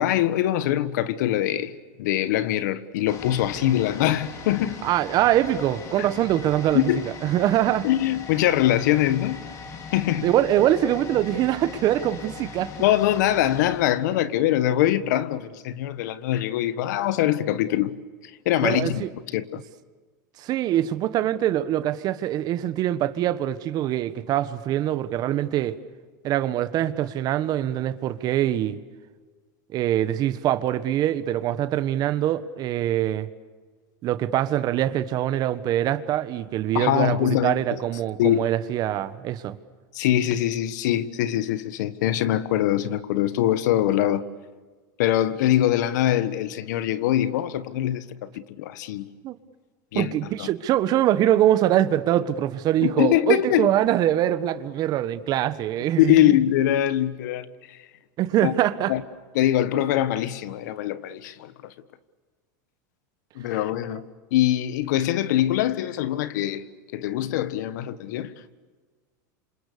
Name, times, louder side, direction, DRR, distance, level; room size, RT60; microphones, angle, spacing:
voice 1, 0.0-1.7 2.0-4.8 6.0-6.1 6.7-7.1 7.8-9.4 9.9-10.3 12.8-18.0 18.4-19.0 19.3-19.6 36.7-37.6 38.2-38.4 39.9-44.3 45.0-49.1 49.9-50.1 50.4-50.5 52.8-53.7 56.0-57.4 58.4-58.5 58.9-59.0 59.3-61.7 63.3-64.0 64.3-66.6 66.9-68.3, left 12 dB, 75° left, 1.5 m, -23 dB
sound 1, 3.1-14.8 15.1-15.2, left 4 dB, 35° left, 4.3 m, -40 dB
voice 2, 4.8-6.9 7.2-7.9 10.2-12.7 18.6-19.1 20.4-25.8 26.2-28.8 29.7-33.3 34.0-39.6 49.2-49.3 49.9-56.4 58.2-58.9 63.9-64.0, right 12 dB, 45° right, 1.4 m, -23 dB
30.0 x 27.0 x 6.9 m
supercardioid pair, 125°, 10 cm